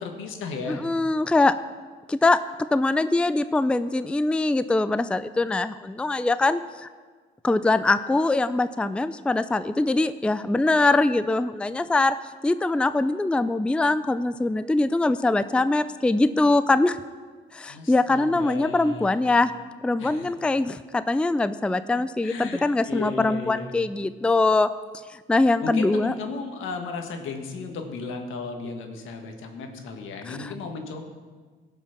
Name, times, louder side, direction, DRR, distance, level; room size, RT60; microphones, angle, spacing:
voice 1, 0.0-0.8 17.7-19.3 20.0-20.3 22.2-23.8 25.6-31.0, left 4 dB, 85° left, 4 dB, 1.6 m, -35 dB
voice 2, 0.7-1.5 2.1-2.4 2.7-6.9 7.4-12.1 12.4-17.0 17.5-19.5 19.8-24.7 25.1-26.1 30.3-30.4, left 2 dB, 5° left, 13 dB, 0.4 m, -22 dB
17.5 x 6.0 x 5.8 m, 1.5 s
cardioid pair, 90°, 20 cm